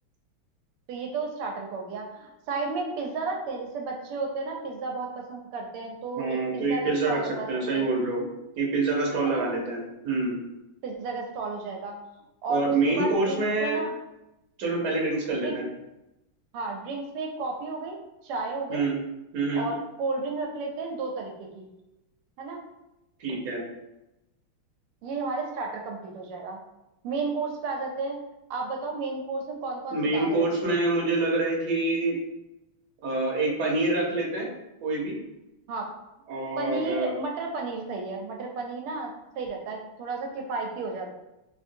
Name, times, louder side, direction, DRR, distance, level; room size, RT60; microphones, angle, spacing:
voice 1, 0.9-7.5 7.7-7.9 9.2-9.5 10.8-12.0 12.4-13.9 15.4-15.6 16.5-18.0 18.2-18.9 19.5-21.7 22.4-22.6 25.0-26.6 27.0-28.2 28.5-30.8 35.7-35.9 36.6-41.2, right 3 dB, 85° right, 1 dB, 1.5 m, -33 dB
voice 2, 6.2-8.2 8.6-10.4 12.5-13.8 14.6-15.6 18.7-19.0 19.3-19.7 23.2-23.6 29.9-32.2 33.0-34.5 34.8-35.2 36.3-37.1, right 2 dB, 55° right, -3 dB, 1.3 m, -26 dB
4.0 x 2.5 x 2.6 m, 0.93 s
omnidirectional pair, 2.4 m